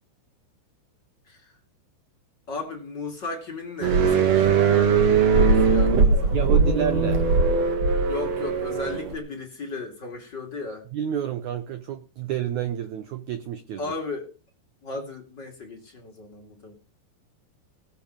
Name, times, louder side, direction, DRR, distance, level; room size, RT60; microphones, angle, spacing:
voice 1, 2.5-4.9 5.3-6.5 8.1-10.9 13.8-14.3 14.8-16.7, left 3 dB, 30° left, 2 dB, 2.6 m, -35 dB
sound 1, 3.8-9.1, right 5 dB, 55° right, 2.1 m, -20 dB
voice 2, 6.3-7.2 10.9-13.9, right 10 dB, 80° right, 9 dB, 1.7 m, -29 dB
18.0 x 7.5 x 5.3 m, 0.33 s
omnidirectional pair, 4.8 m